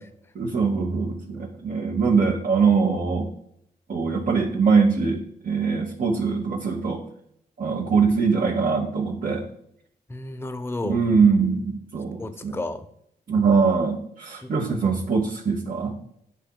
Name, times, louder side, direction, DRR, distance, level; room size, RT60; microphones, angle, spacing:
voice 1, 0.3-3.3 3.9-7.0 7.6-9.4 10.8-12.6 13.3-15.9, right 5 dB, 50° right, -1 dB, 0.8 m, -22 dB
voice 2, 10.1-11.0 12.2-12.8 14.4-14.5, left 2 dB, 15° left, 9 dB, 0.5 m, -32 dB
8.2 x 2.8 x 2.2 m, 0.71 s
supercardioid pair, 50°, 18 cm